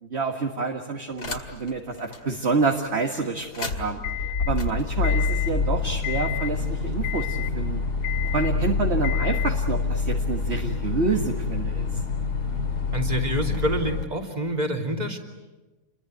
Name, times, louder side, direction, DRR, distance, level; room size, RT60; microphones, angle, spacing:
voice 1, 0.0-4.0 4.4-7.8 8.2-12.0, right 4 dB, 45° right, 3 dB, 1.9 m, -28 dB
sound 1, 1.2-1.7 2.1-2.2 3.4-14.0, left 4 dB, 85° left, 2.8 m, -26 dB
voice 2, 12.9-15.2, right 1 dB, 25° right, 3 dB, 3.0 m, -27 dB
28.5 x 22.0 x 9.2 m, 1.2 s
omnidirectional pair, 1.7 m